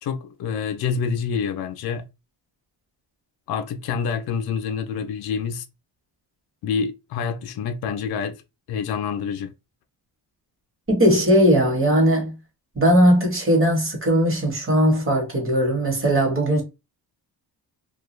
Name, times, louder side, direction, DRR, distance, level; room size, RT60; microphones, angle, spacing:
voice 1, 0.0-2.0 3.5-5.6 6.6-8.4 8.7-9.5, left 6 dB, 60° left, 0.5 m, -27 dB
voice 2, 10.9-12.3 12.7-16.6, equal, 30° right, 1.2 m, -18 dB
2.3 x 2.2 x 3.0 m
cardioid pair, 120°, 43 cm